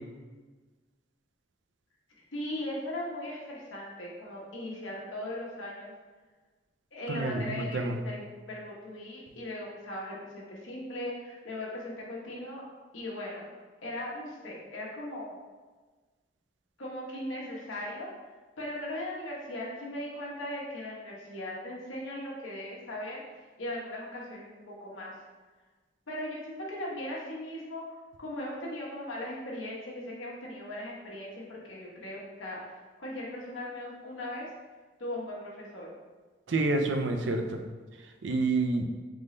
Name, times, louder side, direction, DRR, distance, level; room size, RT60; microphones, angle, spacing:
voice 1, 2.3-5.9 6.9-8.2 8.5-12.6 12.9-13.4 13.8-15.4 16.8-18.1 18.6-23.2 23.6-25.1 26.1-27.8 28.2-34.5 35.0-35.9, left 1 dB, 90° left, -4 dB, 1.2 m, -38 dB
voice 2, 7.1-8.0 36.5-37.6 38.2-38.9, right 2 dB, 65° right, 5 dB, 0.5 m, -28 dB
3.8 x 3.7 x 3.2 m, 1.3 s
head